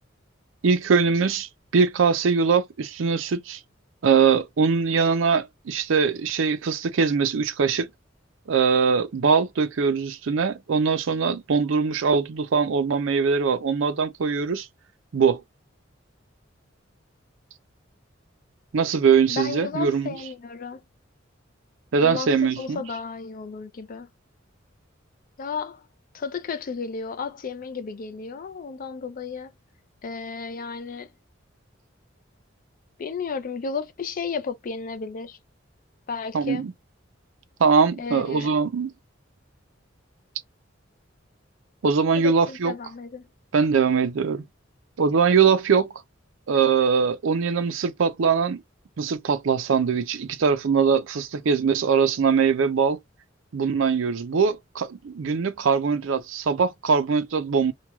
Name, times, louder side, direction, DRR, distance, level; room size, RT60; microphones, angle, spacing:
voice 1, 0.6-3.6 4.0-7.9 8.5-14.7 15.1-15.4 18.7-20.1 21.9-22.8 36.3-36.7 37.6-38.9 41.8-42.7 43.5-44.4 45.0-45.9 46.5-48.6 49.0-53.0 53.5-57.7, right 5 dB, 75° right, 0.5 m, -22 dB
voice 2, 19.3-20.8 22.0-24.1 25.4-25.9 26.1-29.5 30.0-31.1 33.0-35.4 36.1-36.6 38.0-38.5 42.2-43.2, left 5 dB, 45° left, 0.4 m, -33 dB
3.0 x 2.3 x 2.2 m
head